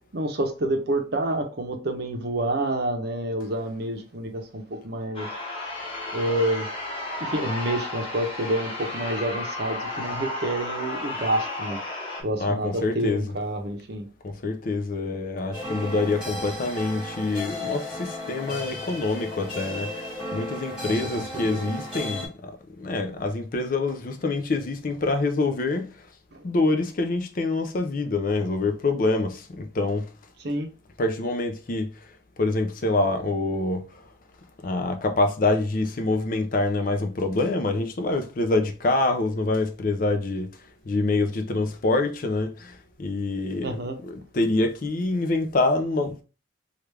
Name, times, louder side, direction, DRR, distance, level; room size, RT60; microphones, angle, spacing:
voice 1, 0.1-5.3 6.1-6.7 7.2-11.8 12.2-14.1 20.8-21.7 26.3-26.5 30.4-30.7 43.6-44.0, right 1 dB, 55° right, 0.6 m, -28 dB
sound 1, 5.1-12.2, left 2 dB, 25° left, 0.8 m, -33 dB
voice 2, 12.4-13.2 14.2-25.9 26.4-30.1 31.0-32.1 32.4-34.0 34.6-40.5 40.9-43.8 44.1-46.2, left 2 dB, 45° left, 0.4 m, -26 dB
sound 2, 15.5-22.3, left 1 dB, 5° right, 1.8 m, -34 dB
3.3 x 2.4 x 3.2 m
head